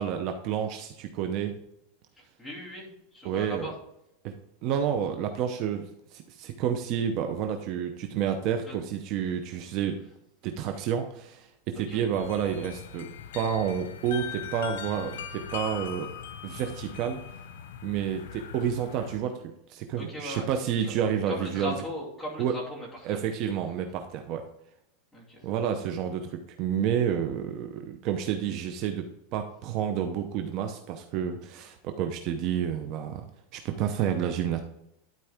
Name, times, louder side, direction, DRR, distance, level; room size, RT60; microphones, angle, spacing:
voice 1, 0.0-1.6 3.2-3.7 4.2-4.3 4.6-10.0 10.4-16.1 16.4-17.2 17.8-19.4 19.7-21.7 22.4-22.5 23.1-24.4 25.4-33.3 33.5-34.6, right 8 dB, 45° right, 6 dB, 0.7 m, -30 dB
voice 2, 2.1-3.8 8.6-8.8 9.6-9.7 11.7-12.1 19.9-21.0 21.3-23.2 25.1-25.5, left 1 dB, ahead, -5 dB, 2.7 m, -39 dB
sound 1, 12.1-19.2, left 8 dB, 90° left, 0.9 m, -40 dB
11.5 x 4.6 x 3.5 m, 0.82 s
supercardioid pair, 150°, 0 cm